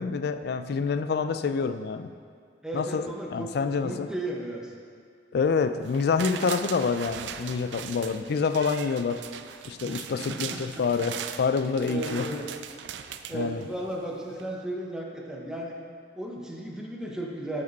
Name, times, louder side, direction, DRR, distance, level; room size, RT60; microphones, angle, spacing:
voice 1, 0.0-2.1 2.7-4.1 5.3-9.2 9.6-12.3 13.3-13.6, left 5 dB, 60° left, 10 dB, 0.3 m, -27 dB
voice 2, 2.6-3.5 3.8-4.7 7.8-8.2 9.8-10.8 11.8-12.5 13.3-15.8 16.2-17.6, right 1 dB, 5° right, -2 dB, 0.8 m, -35 dB
sound 1, 5.8-14.0 14.4-14.5, right 8 dB, 75° right, 0.4 m, -39 dB
8.8 x 5.1 x 4.1 m, 2.2 s
head